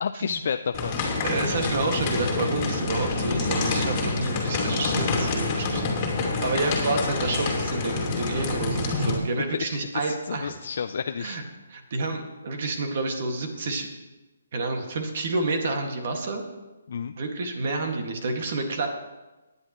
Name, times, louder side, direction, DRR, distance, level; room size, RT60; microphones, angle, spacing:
voice 1, 0.0-0.9 9.6-11.4 16.9-17.1, left 6 dB, 50° left, 8 dB, 0.4 m, -31 dB
sound 1, 0.7-9.2, left 3 dB, 25° left, 2.3 m, -27 dB
voice 2, 1.2-5.8 6.4-10.5 11.2-11.4 11.7-13.9 14.5-16.4 17.2-18.9, right 2 dB, 45° right, 3 dB, 1.9 m, -29 dB
18.0 x 9.8 x 3.1 m, 1.1 s
hypercardioid pair, 165°, 0 cm